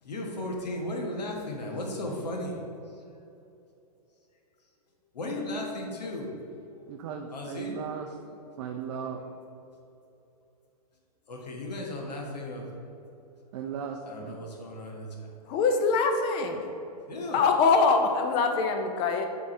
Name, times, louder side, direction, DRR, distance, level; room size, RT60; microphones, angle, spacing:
voice 1, 0.0-2.6 5.1-6.3 7.3-7.8 11.3-12.7 14.0-15.3 17.1-17.4, left 1 dB, 90° left, 0 dB, 1.3 m, -35 dB
voice 2, 6.9-8.1 8.6-9.2 13.5-14.4 16.5-16.6, right 7 dB, 50° right, 2 dB, 0.5 m, -36 dB
voice 3, 15.5-16.6 17.3-19.3, left 4 dB, 25° left, 5 dB, 0.5 m, -23 dB
6.3 x 3.7 x 4.3 m, 2.8 s
hypercardioid pair, 145°, 20 cm